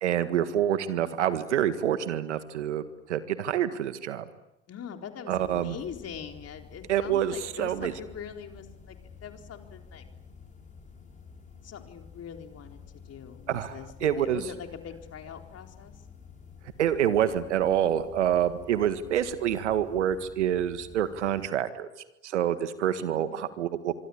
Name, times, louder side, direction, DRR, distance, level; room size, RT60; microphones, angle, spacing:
voice 1, 0.0-2.8 3.1-4.3 5.3-5.8 6.9-7.9 13.5-13.7 14.0-14.4 16.8-21.9 22.2-23.9, right 10 dB, 80° right, 12 dB, 1.8 m, -27 dB
voice 2, 4.7-9.0 9.2-10.1 11.6-15.9 23.1-23.5, left 7 dB, 45° left, 4 dB, 4.1 m, -42 dB
sound 1, 5.3-21.5, left 6 dB, 20° left, 6.4 m, -50 dB
26.0 x 23.0 x 8.7 m, 0.92 s
hypercardioid pair, 60°, 35 cm